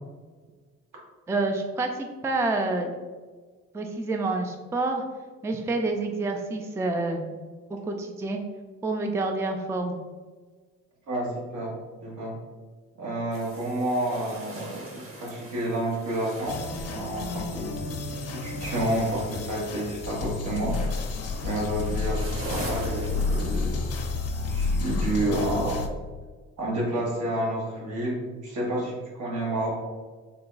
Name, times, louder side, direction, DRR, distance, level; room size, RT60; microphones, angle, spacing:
voice 1, 1.3-2.9 3.7-5.0 5.4-7.2 7.9-8.4 8.8-9.9, right 2 dB, 10° right, 4 dB, 0.3 m, -28 dB
voice 2, 11.1-11.7 12.0-12.4 12.9-18.0 18.3-20.8 21.4-23.8 24.4-25.8 26.6-29.7, right 1 dB, 75° right, -3 dB, 1.3 m, -30 dB
sound 1, 13.3-25.3, right 1 dB, 45° right, 1.1 m, -43 dB
sound 2, 16.5-25.9, left 3 dB, 55° left, 0.5 m, -30 dB
3.8 x 2.3 x 3.8 m, 1.4 s
cardioid pair, 90°, 30 cm